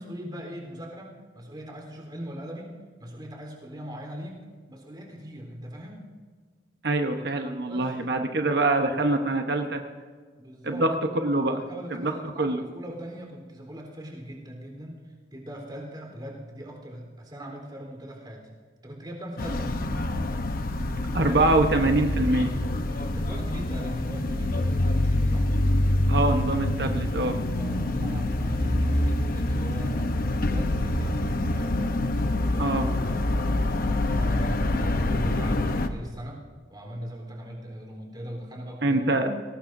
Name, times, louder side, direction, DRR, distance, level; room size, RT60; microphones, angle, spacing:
voice 1, 0.0-6.1 7.7-8.2 10.4-10.9 11.6-15.0 15.3-18.4 18.8-19.7 22.9-25.5 27.5-30.1 30.5-31.2 31.5-31.8 32.5-33.5 33.8-36.4 36.7-39.0, equal, 25° right, 0 dB, 3.8 m, -40 dB
voice 2, 6.8-9.8 10.6-11.6 12.0-12.1 12.4-12.6 21.1-22.5 26.1-27.4 32.6-32.9 38.8-39.4, right 2 dB, 65° right, 5 dB, 1.0 m, -24 dB
sound 1, 19.4-35.9, left 1 dB, 55° left, 0.9 m, -26 dB
22.0 x 18.0 x 2.7 m, 1.5 s
head